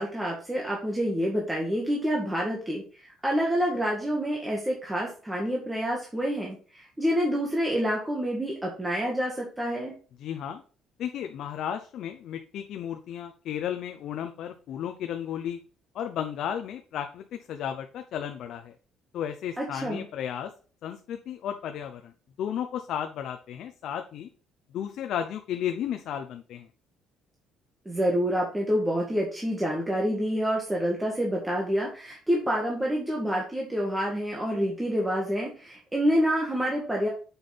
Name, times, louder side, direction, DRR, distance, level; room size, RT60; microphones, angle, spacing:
voice 1, 0.0-9.9 19.6-20.0 27.9-37.1, equal, 10° right, -2 dB, 1.7 m, -27 dB
voice 2, 10.2-10.6 11.0-15.6 15.9-18.8 19.1-20.5 20.8-22.1 22.4-24.3 24.7-26.7, left 9 dB, 60° left, 6 dB, 0.7 m, -34 dB
7.1 x 5.9 x 3.5 m, 0.38 s
cardioid pair, 130°, 0 cm